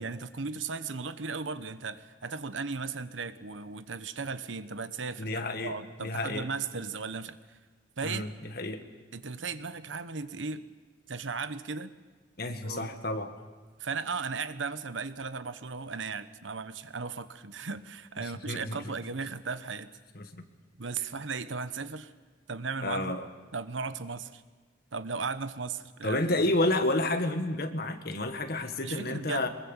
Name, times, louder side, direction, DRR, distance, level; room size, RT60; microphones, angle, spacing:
voice 1, 0.0-7.6 8.0-8.2 9.1-10.6 11.1-11.9 12.6-12.9 13.8-19.9 20.8-22.1 22.5-23.2 23.5-24.4 24.9-26.2 28.8-29.5, right 4 dB, 85° right, 12 dB, 1.1 m, -36 dB
voice 2, 5.2-6.5 8.0-8.3 8.6-8.8 12.4-13.3 18.2-18.9 20.2-20.4 22.8-23.2 26.0-29.5, left 2 dB, 55° left, 7 dB, 1.7 m, -30 dB
23.0 x 21.5 x 7.3 m, 1.4 s
head